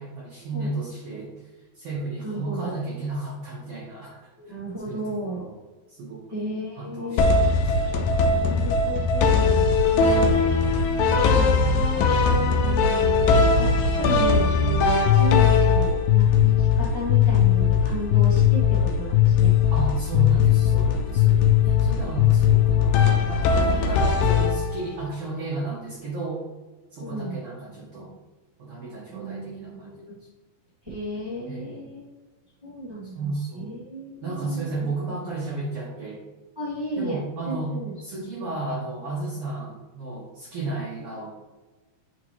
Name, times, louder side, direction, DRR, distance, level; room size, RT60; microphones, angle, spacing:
voice 1, 0.0-1.3 1.7-4.5 4.8-5.5 5.9-6.5 6.8-7.9 19.7-26.5 26.9-28.1 28.6-30.1 31.5-31.9 33.0-33.7 34.2-36.2 37.0-37.7 38.0-41.3, right 2 dB, 60° right, -6 dB, 1.5 m, -33 dB
voice 2, 2.2-2.7 4.4-5.4 6.3-7.3 8.3-10.4 11.0-12.0 12.6-19.5 21.6-21.7 27.0-27.4 29.1-30.2 30.8-32.1 32.6-34.9 36.5-37.2 37.4-37.9, right 1 dB, 10° right, -8 dB, 1.0 m, -34 dB
sound 1, 7.2-25.0, left 6 dB, 80° left, 2.3 m, -19 dB
8.5 x 4.8 x 3.2 m, 1.2 s
omnidirectional pair, 4.4 m